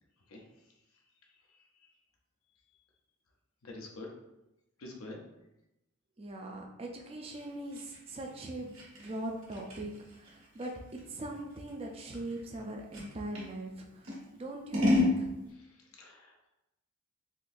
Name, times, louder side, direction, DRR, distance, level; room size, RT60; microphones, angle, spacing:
voice 1, 3.6-4.1 4.8-5.2 15.5-15.6 16.0-16.5, left 2 dB, 80° left, 0 dB, 0.6 m, -46 dB
voice 2, 6.2-10.7 11.1-15.3, right 1 dB, 25° right, 1 dB, 0.4 m, -41 dB
Scissors, 7.3-13.5 14.0-15.2, left 2 dB, 75° right, 1.3 m, -32 dB
3.7 x 2.6 x 2.5 m, 0.91 s
head